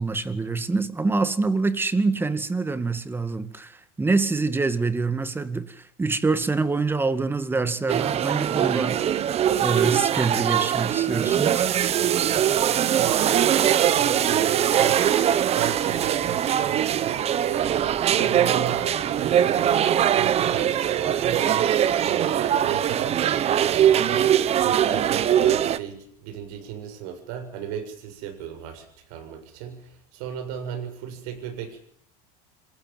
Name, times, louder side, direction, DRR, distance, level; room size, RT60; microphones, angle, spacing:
voice 1, 0.0-9.0 9.6-11.7, right 3 dB, 10° right, 2.0 m, -25 dB
sound 1, 7.9-25.8, right 10 dB, 35° right, 1.2 m, -22 dB
voice 2, 13.0-31.8, right 9 dB, 75° right, 7.3 m, -35 dB
27.0 x 15.5 x 9.4 m
supercardioid pair, 135°, 18 cm